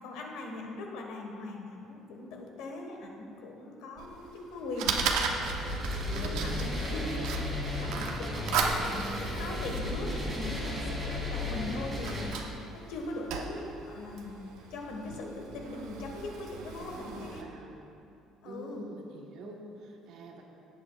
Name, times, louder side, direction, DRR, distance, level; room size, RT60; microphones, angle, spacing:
voice 1, 0.0-4.9 6.1-7.1 7.8-14.4 14.7-17.5 18.4-18.9, left 2 dB, 80° left, 1 dB, 1.5 m, -40 dB
Fire, 4.0-17.4, right 5 dB, 85° right, 0.8 m, -37 dB
sound 1, 4.9-12.2, left 1 dB, 10° right, 2.2 m, -34 dB
voice 2, 6.0-7.2 16.8-17.8 18.4-20.4, right 1 dB, 55° right, 1 dB, 1.2 m, -45 dB
17.5 x 8.3 x 2.4 m, 2.8 s
cardioid pair, 180°, 0 cm